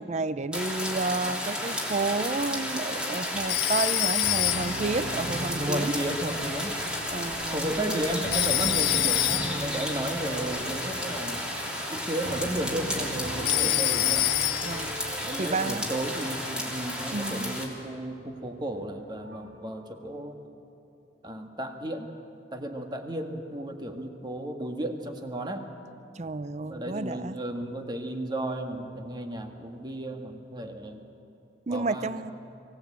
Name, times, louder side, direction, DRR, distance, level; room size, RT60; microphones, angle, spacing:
voice 1, 0.0-6.0 7.1-7.7 14.6-14.9 15.4-15.9 17.1-17.6 26.2-27.4 31.7-32.3, right 3 dB, 40° right, 14 dB, 0.6 m, -31 dB
sound 1, 0.5-17.7, equal, 5° right, 3.0 m, -33 dB
sound 2, 3.3-19.6, equal, 90° right, 4.5 m, -40 dB
Telephone, 3.5-4.9 8.3-9.7 13.5-14.9, left 19 dB, 75° left, 0.4 m, -26 dB
voice 2, 5.5-6.8 7.5-11.5 11.9-14.3 15.2-20.4 21.2-22.1 22.5-25.7 26.6-31.0 31.7-32.3, right 1 dB, 25° right, 5 dB, 1.7 m, -34 dB
24.0 x 17.5 x 8.6 m, 2.9 s
head